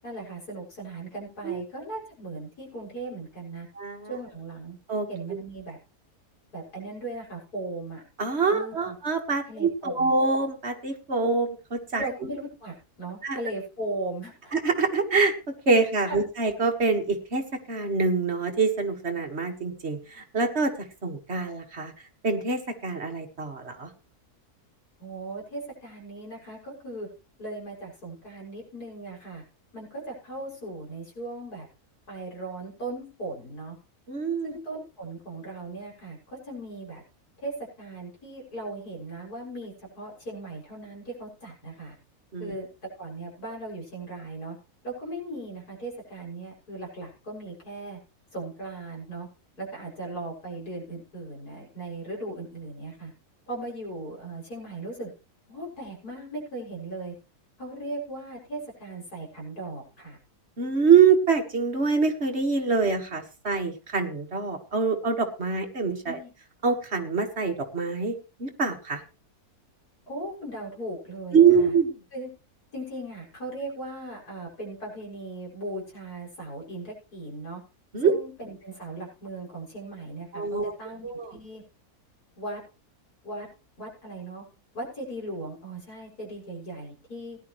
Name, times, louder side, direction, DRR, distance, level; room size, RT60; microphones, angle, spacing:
voice 1, 0.0-3.7 4.1-4.8 5.1-5.8 6.5-8.0 8.5-8.9 9.5-10.1 11.9-14.5 16.1-16.2 25.0-27.1 27.4-29.4 29.7-31.7 32.1-33.8 34.4-37.0 37.4-42.0 42.4-42.7 43.0-44.6 44.8-48.0 48.3-49.3 49.6-53.1 53.5-55.1 55.5-57.1 57.6-60.2 66.0-66.3 70.1-71.7 72.1-72.3 72.7-77.6 78.0-81.6 82.4-82.6 83.2-83.5 83.8-84.5 84.7-87.4, right 2 dB, 85° left, -2 dB, 7.2 m, -38 dB
voice 2, 3.8-4.2 4.9-5.1 8.2-12.1 13.2-13.4 14.5-21.9 22.2-23.9 34.1-34.5 42.3-42.5 60.6-66.2 66.6-69.0 71.3-71.9 77.9-78.1 80.3-80.7 81.0-81.3, right 5 dB, 45° right, 5 dB, 2.0 m, -25 dB
18.5 x 11.0 x 3.2 m, 0.31 s
omnidirectional pair, 1.6 m